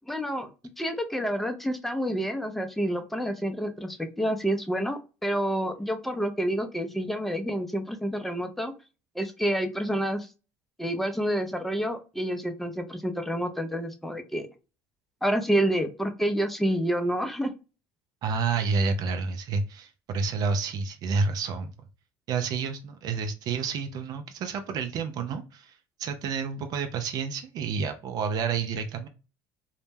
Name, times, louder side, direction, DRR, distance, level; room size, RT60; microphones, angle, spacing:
voice 1, 0.1-0.5 0.8-8.7 9.2-10.3 10.8-14.5 15.2-17.5, equal, 5° left, 7 dB, 0.5 m, -28 dB
voice 2, 18.2-21.7 22.3-25.7 26.0-29.1, right 5 dB, 55° right, 8 dB, 0.4 m, -29 dB
2.1 x 2.1 x 3.2 m, 0.32 s
supercardioid pair, 95°, 8 cm